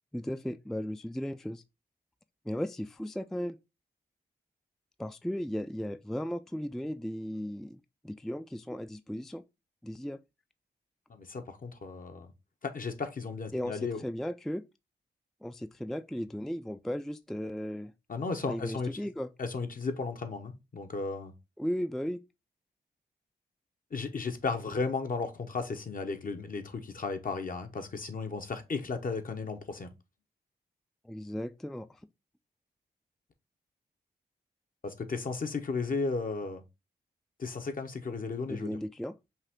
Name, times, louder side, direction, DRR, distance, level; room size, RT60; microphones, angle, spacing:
voice 1, 0.1-1.6 2.5-3.6 5.0-7.8 8.0-9.4 9.8-10.2 13.5-14.6 15.4-17.9 18.5-19.3 21.6-22.2 31.0-32.0 38.5-39.1, equal, ahead, 0.3 m, -36 dB
voice 2, 11.1-12.3 12.6-14.0 18.1-18.9 19.4-21.3 23.9-29.9 34.8-36.6 37.4-38.8, left 4 dB, 55° left, 1.0 m, -34 dB
5.5 x 2.4 x 3.6 m
cardioid pair, 55°, 17 cm